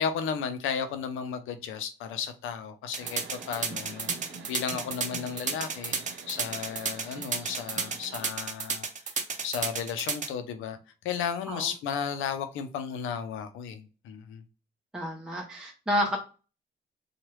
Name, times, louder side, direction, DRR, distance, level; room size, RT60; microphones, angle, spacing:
voice 1, 0.0-4.1 4.5-6.0 6.3-8.9 9.4-10.8 11.0-14.4, left 7 dB, 85° left, 0.6 m, -34 dB
sound 1, 2.9-10.3, right 5 dB, 40° right, 0.6 m, -31 dB
sound 2, 3.0-8.3, right 3 dB, 70° right, 0.9 m, -46 dB
voice 2, 14.9-16.2, equal, 5° right, 0.7 m, -30 dB
3.0 x 2.3 x 3.1 m
cardioid pair, 90°, 20 cm